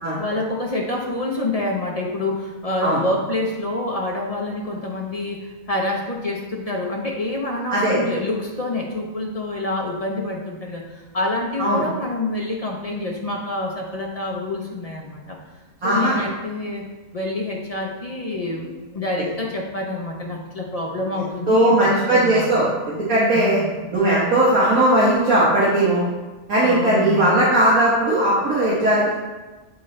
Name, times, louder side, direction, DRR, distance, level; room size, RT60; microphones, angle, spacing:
voice 1, 0.2-15.4 15.8-16.9 17.1-22.5 23.3-23.8 26.6-27.3, left 2 dB, 55° left, -1 dB, 0.4 m, -27 dB
voice 2, 15.8-16.2 21.5-23.6 23.9-26.0 26.5-29.1, right 1 dB, 65° right, -8 dB, 1.7 m, -18 dB
9.0 x 3.9 x 3.2 m, 1.2 s
omnidirectional pair, 1.6 m